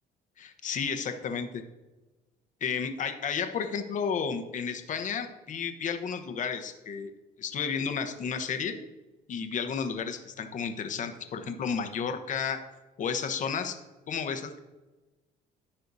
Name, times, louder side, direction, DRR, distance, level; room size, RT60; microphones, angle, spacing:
voice 1, 0.4-1.6 2.6-7.1 7.4-8.8 9.3-12.6 13.0-13.8 14.1-14.6, left 6 dB, 50° left, 7 dB, 0.9 m, -32 dB
14.0 x 5.5 x 2.7 m, 1.2 s
cardioid pair, 110°, 17 cm